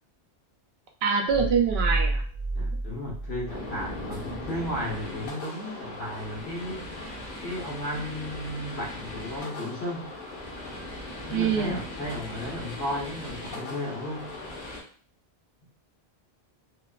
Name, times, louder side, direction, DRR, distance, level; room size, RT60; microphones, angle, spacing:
voice 1, 1.0-2.2 11.3-11.8, right 6 dB, 80° right, 3 dB, 0.8 m, -24 dB
sound 1, 1.3-4.1, right 2 dB, 55° right, 0.8 m, -30 dB
voice 2, 2.5-6.9 7.4-10.1 11.3-14.3 14.6-14.8, left 1 dB, 90° left, -3 dB, 1.2 m, -34 dB
sound 2, 3.5-14.8, left 1 dB, 55° left, 0.9 m, -39 dB
2.5 x 2.3 x 2.3 m, 0.43 s
omnidirectional pair, 1.0 m